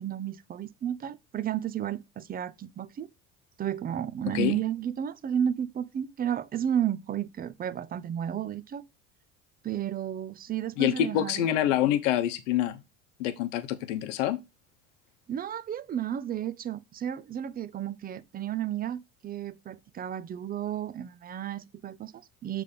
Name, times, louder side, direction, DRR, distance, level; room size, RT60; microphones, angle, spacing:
voice 1, 0.0-3.1 3.6-8.8 9.6-11.4 15.3-22.6, right 10 dB, 25° right, 0.4 m, -32 dB
voice 2, 10.8-12.8 13.2-14.4, left 11 dB, 85° left, 0.8 m, -26 dB
6.8 x 3.3 x 5.0 m
hypercardioid pair, 80°, 37 cm